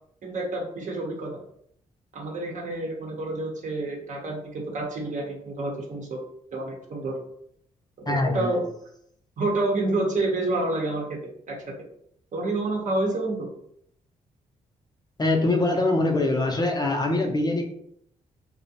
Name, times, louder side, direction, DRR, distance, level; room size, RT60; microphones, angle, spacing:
voice 1, 0.2-1.4 2.1-6.2 6.5-7.1 8.0-8.6 9.4-11.2 11.5-11.6 12.3-13.5, right 2 dB, 55° right, -1 dB, 0.8 m, -28 dB
voice 2, 8.1-8.6 15.2-17.6, left 2 dB, 25° left, 2 dB, 0.5 m, -23 dB
2.4 x 2.1 x 2.7 m, 0.68 s
supercardioid pair, 50°, 15 cm